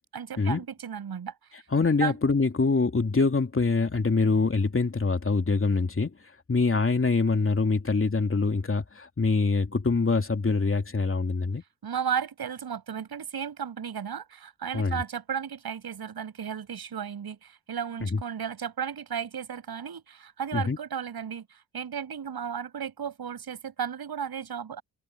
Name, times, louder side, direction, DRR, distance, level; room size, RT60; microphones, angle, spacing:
voice 1, 0.1-1.3 2.0-2.2 11.8-24.8, right 7 dB, 55° right, 7.6 m, -34 dB
voice 2, 1.7-6.1 6.5-11.6 14.7-15.0 18.0-18.2 20.5-20.8, left 4 dB, 30° left, 2.9 m, -24 dB
open air
hypercardioid pair, 45°, 43 cm